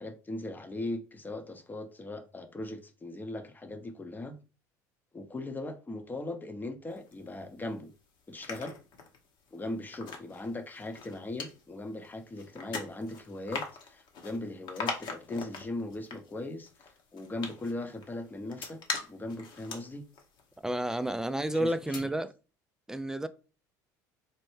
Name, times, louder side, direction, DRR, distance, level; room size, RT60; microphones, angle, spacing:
voice 1, 0.0-4.4 5.1-7.9 8.3-8.8 9.5-18.8 19.1-20.0 21.5-22.1, left 2 dB, 20° left, 0.7 m, -39 dB
sound 1, 6.9-7.8 8.2-21.4 21.7-22.0, left 4 dB, 55° left, 0.9 m, -42 dB
voice 2, 20.6-22.3 22.9-23.3, right 1 dB, 5° right, 0.3 m, -30 dB
4.3 x 2.1 x 3.2 m
hypercardioid pair, 75°, 9 cm